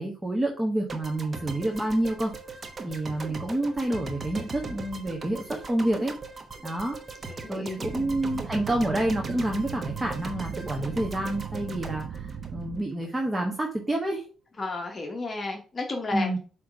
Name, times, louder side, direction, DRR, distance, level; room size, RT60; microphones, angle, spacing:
voice 1, 0.0-2.3 2.8-6.1 6.6-7.0 7.5-14.2 16.1-16.4, right 1 dB, 15° right, 0 dB, 1.3 m, -28 dB
sound 1, 0.9-13.1, right 3 dB, 35° right, 1.0 m, -40 dB
voice 2, 7.3-7.9 14.6-16.4, left 3 dB, 35° left, 2 dB, 1.1 m, -33 dB
sound 2, 7.8-12.8, right 7 dB, 60° right, 0.7 m, -38 dB
7.8 x 3.2 x 4.9 m, 0.38 s
cardioid pair, 90°, 0 cm